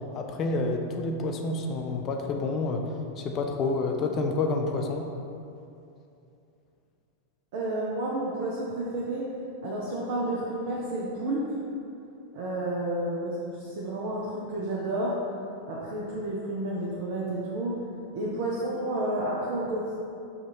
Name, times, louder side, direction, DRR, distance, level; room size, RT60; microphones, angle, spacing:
voice 1, 0.1-2.8 3.2-5.0, left 3 dB, 30° left, 3 dB, 0.3 m, -28 dB
voice 2, 7.5-9.3 9.6-11.6 12.3-15.2 15.7-17.8 18.1-20.0, right 1 dB, 50° right, -5 dB, 0.5 m, -31 dB
5.6 x 2.4 x 2.7 m, 2.7 s
figure-of-eight pair, 90°, 0 cm